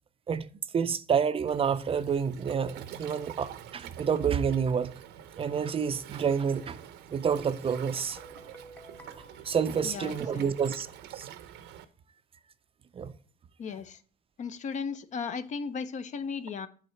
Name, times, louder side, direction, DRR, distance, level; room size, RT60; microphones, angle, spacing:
voice 1, 0.7-4.9 5.4-6.8 7.1-8.2 9.2-10.9 11.1-11.3 12.9-13.1, right 7 dB, 35° right, 0.4 m, -28 dB
Waves surf, 1.5-11.8, right 10 dB, 85° right, 0.7 m, -47 dB
Guitar, 8.0-10.6, right 2 dB, 10° left, 0.8 m, -53 dB
voice 2, 9.8-10.5 13.6-14.0 14.4-16.7, left 5 dB, 45° left, 0.6 m, -36 dB
8.1 x 3.9 x 4.4 m
cardioid pair, 110°, 17 cm